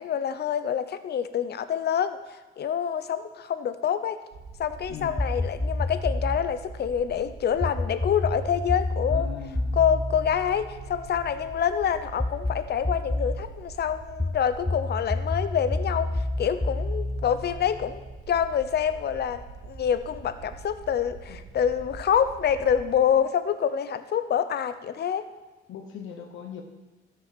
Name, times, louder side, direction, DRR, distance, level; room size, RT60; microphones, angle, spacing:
voice 1, 0.0-2.2 2.6-4.2 4.6-9.3 9.8-16.1 16.4-18.0 18.3-25.2, left 8 dB, 55° left, 12 dB, 0.8 m, -26 dB
sound 1, 4.3-22.9, right 4 dB, 60° right, 2.3 m, -44 dB
voice 2, 4.9-5.2 9.0-9.8 21.3-21.4 25.7-26.6, left 8 dB, 80° left, 4 dB, 1.1 m, -40 dB
sound 2, 5.2-6.5 7.6-11.3 12.2-13.4 14.2-18.1, left 2 dB, 10° left, 0.5 m, -29 dB
13.0 x 5.6 x 6.8 m, 1.2 s
cardioid pair, 90°, 20 cm